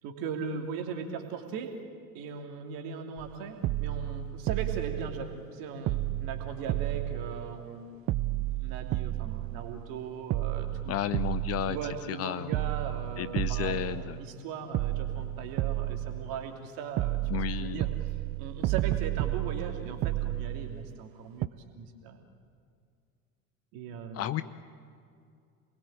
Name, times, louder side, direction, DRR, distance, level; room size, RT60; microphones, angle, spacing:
voice 1, 0.0-1.8 2.1-7.9 8.6-11.0 11.7-17.9 18.4-21.5 21.7-22.2 23.7-24.3, right 6 dB, 50° right, 4 dB, 3.0 m, -39 dB
sound 1, 3.2-3.3 3.6-5.5 5.9-7.8 8.1-9.9 10.3-12.2 12.5-14.4 14.7-16.6 17.0-21.1 21.4-21.5, right 15 dB, 30° right, 0.6 m, -32 dB
voice 2, 10.9-11.8 12.1-12.6 13.2-14.2 17.3-17.9 24.1-24.4, left 13 dB, 35° left, 14 dB, 0.8 m, -32 dB
28.0 x 21.0 x 8.9 m, 2.4 s
figure-of-eight pair, 70°, 44 cm